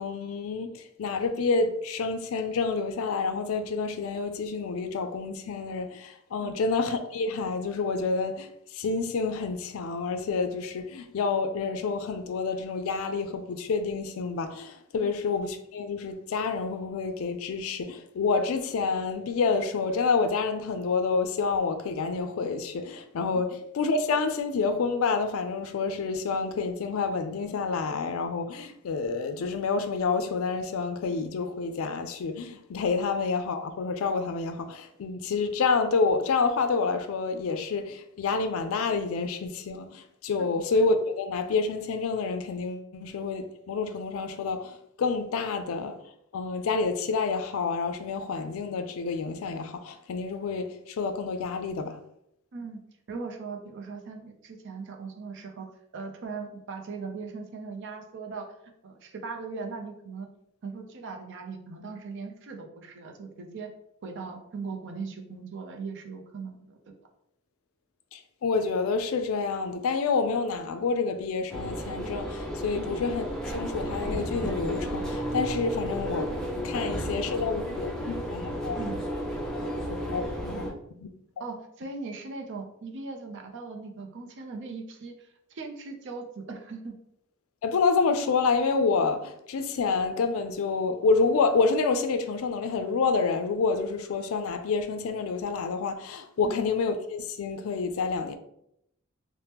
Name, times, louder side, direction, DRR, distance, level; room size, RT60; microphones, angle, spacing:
voice 1, 0.0-46.0 46.3-52.0 68.1-76.3 76.6-79.0 79.9-80.6 81.0-81.1 87.6-98.4, left 4 dB, 75° left, 0.4 m, -28 dB
voice 2, 53.1-55.7 55.9-58.5 58.8-60.3 60.6-63.7 64.0-66.9 72.7-72.9 77.2-77.3 78.7-79.0 80.5-80.8 81.4-87.0 96.4-96.6, right 4 dB, 60° right, 0.5 m, -39 dB
sound 1, 71.5-80.7, equal, 5° left, 0.5 m, -33 dB
2.9 x 2.1 x 3.4 m
head